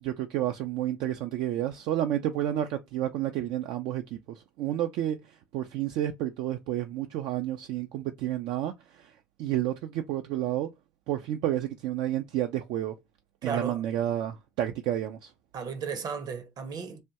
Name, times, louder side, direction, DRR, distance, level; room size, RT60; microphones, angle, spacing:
voice 1, 0.0-5.2 5.5-9.1 9.4-10.7 11.1-12.9 13.4-15.3, right 12 dB, 70° right, 0.4 m, -30 dB
voice 2, 13.4-13.8 15.5-17.0, right 6 dB, 50° right, 0.8 m, -34 dB
3.3 x 2.2 x 2.8 m
hypercardioid pair, 65°, 8 cm